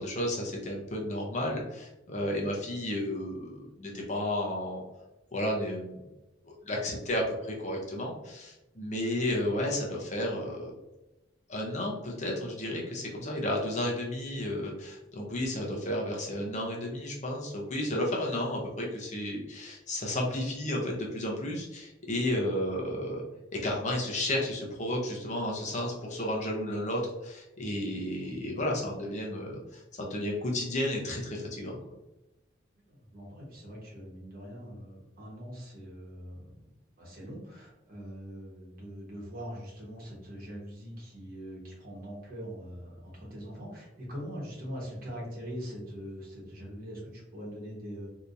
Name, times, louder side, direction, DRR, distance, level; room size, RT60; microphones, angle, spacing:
voice 1, 0.0-4.8 5.3-6.0 6.5-10.7 11.5-23.2 23.6-31.8, left 1 dB, 40° left, -1 dB, 0.7 m, -32 dB
voice 2, 32.9-36.7 37.0-48.1, equal, 50° right, -4 dB, 1.3 m, -42 dB
3.4 x 2.8 x 2.6 m, 0.96 s
head